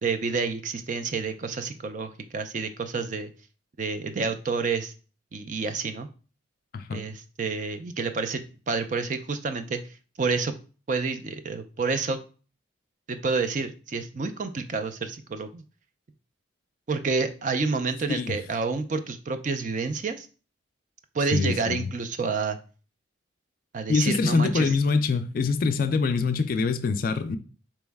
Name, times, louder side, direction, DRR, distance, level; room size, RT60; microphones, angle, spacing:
voice 1, 0.0-3.3 3.8-4.9 5.3-6.1 6.9-8.4 8.7-9.8 10.2-10.6 10.9-12.2 13.1-15.6 16.9-20.3 21.1-22.6 23.7-24.7, right 4 dB, 40° right, 0.4 m, -29 dB
voice 2, 21.3-21.9 23.9-27.4, left 4 dB, 45° left, 0.3 m, -24 dB
4.5 x 3.1 x 3.4 m
head